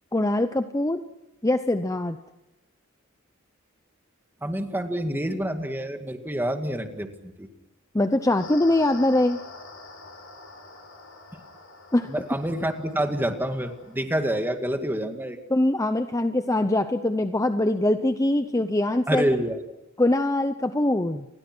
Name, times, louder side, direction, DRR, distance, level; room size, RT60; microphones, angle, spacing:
voice 1, 0.1-1.0 1.4-2.2 7.9-9.4 11.9-12.1 15.5-19.3 20.0-21.3, left 1 dB, 15° left, 9 dB, 0.8 m, -23 dB
voice 2, 4.4-7.1 7.4-7.5 12.0-15.4 19.1-19.6, right 1 dB, 10° right, 6 dB, 2.1 m, -27 dB
sound 1, 8.4-14.0, left 3 dB, 80° left, 7.2 m, -45 dB
29.5 x 22.0 x 6.2 m, 0.96 s
head